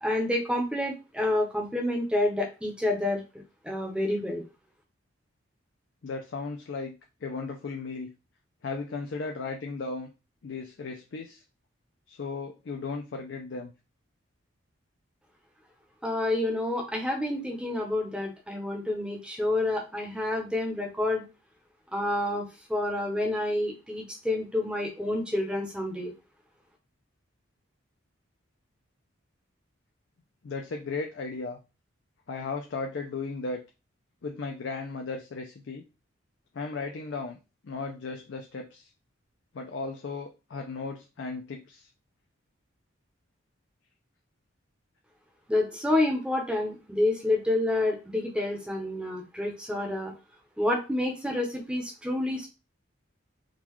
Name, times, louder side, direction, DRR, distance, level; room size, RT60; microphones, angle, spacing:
voice 1, 0.0-3.2 3.6-4.4 16.0-21.2 21.9-22.4 22.7-26.1 45.5-50.1 50.6-52.5, left 1 dB, 5° right, 0 dB, 0.7 m, -28 dB
voice 2, 6.0-6.9 7.2-8.1 8.6-10.1 10.4-11.4 12.1-13.7 30.4-31.6 32.3-33.6 34.2-35.8 36.5-37.4 37.6-38.9 39.5-41.9, left 4 dB, 60° left, 3 dB, 0.4 m, -35 dB
3.7 x 2.3 x 3.0 m, 0.29 s
head